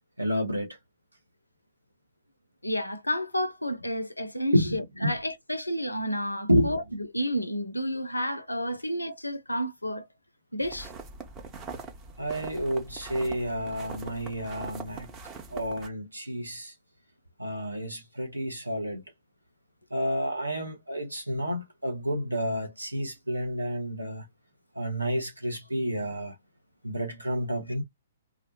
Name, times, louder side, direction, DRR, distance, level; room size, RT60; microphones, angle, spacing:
voice 1, 0.2-0.8 4.5-5.1 6.5-6.8 12.2-15.1 15.5-16.7 17.4-19.0 19.9-24.3 24.7-26.3 26.8-27.8, equal, 85° right, 0.7 m, -30 dB
voice 2, 2.6-10.1 10.5-10.9, equal, 85° left, 0.4 m, -31 dB
sound 1, 10.6-15.9, right 4 dB, 20° right, 0.5 m, -42 dB
2.3 x 2.1 x 2.8 m
figure-of-eight pair, 120°, 0 cm